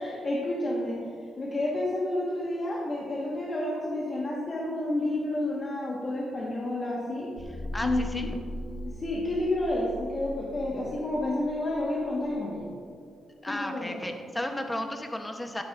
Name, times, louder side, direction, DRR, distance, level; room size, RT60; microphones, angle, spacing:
voice 1, 0.0-7.3 7.8-8.3 8.8-12.7 13.4-14.0, left 1 dB, 30° left, -4 dB, 1.3 m, -30 dB
sound 1, 7.4-12.3, equal, 15° right, 1.2 m, -39 dB
voice 2, 13.4-15.6, left 1 dB, 10° left, 5 dB, 0.8 m, -33 dB
12.0 x 9.4 x 2.4 m, 2.2 s
cardioid pair, 140°, 0 cm